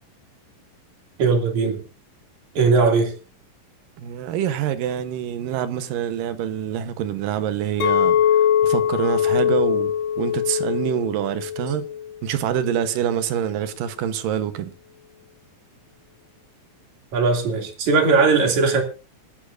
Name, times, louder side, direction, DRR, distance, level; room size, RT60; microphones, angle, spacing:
voice 1, 1.2-1.8 2.6-3.1 17.1-18.8, right 4 dB, 55° right, 3.7 m, -19 dB
voice 2, 4.0-8.2 8.6-9.9 10.2-11.8 12.2-14.7, right 10 dB, 75° right, 2.6 m, -26 dB
Chink clink, 7.8-12.2 12.5-12.9, left 9 dB, 75° left, 3.2 m, -22 dB
26.5 x 9.9 x 2.6 m
omnidirectional pair, 4.1 m